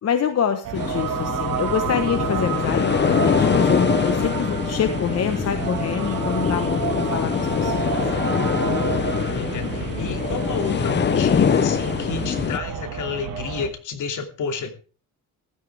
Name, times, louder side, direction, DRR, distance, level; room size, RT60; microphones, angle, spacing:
voice 1, 0.0-8.0, left 7 dB, 50° left, 8 dB, 1.3 m, -26 dB
sound 1, 0.6-13.7, right 9 dB, 85° right, 1.9 m, -29 dB
sound 2, 0.7-12.6, left 7 dB, 35° left, 0.7 m, -23 dB
voice 2, 9.0-14.7, left 5 dB, 65° left, 6 dB, 2.7 m, -31 dB
15.5 x 13.5 x 3.5 m, 0.37 s
cardioid pair, 140°, 32 cm